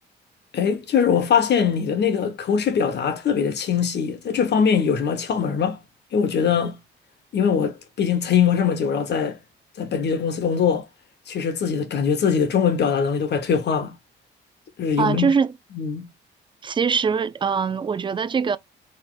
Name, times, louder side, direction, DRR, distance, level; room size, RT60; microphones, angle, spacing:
voice 1, 0.5-5.8 6.1-6.7 7.3-9.4 9.8-10.8 11.3-13.9 14.8-15.3 15.8-16.0, left 7 dB, 60° left, 1.3 m, -22 dB
voice 2, 15.0-15.5 16.6-18.6, right 6 dB, 25° right, 0.4 m, -22 dB
4.2 x 3.7 x 2.4 m
cardioid pair, 90°, 20 cm